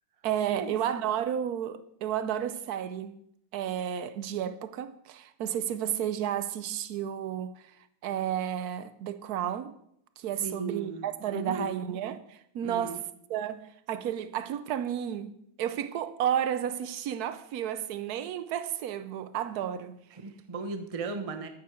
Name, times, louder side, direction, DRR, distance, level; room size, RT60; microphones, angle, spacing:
voice 1, 0.2-3.2 3.5-7.5 8.0-9.7 10.2-13.0 13.3-15.3 15.6-20.0, right 10 dB, 75° right, 0.9 m, -32 dB
voice 2, 10.4-11.7 12.6-13.0 20.1-21.5, right 4 dB, 50° right, 0.4 m, -36 dB
13.5 x 9.7 x 4.4 m
omnidirectional pair, 2.3 m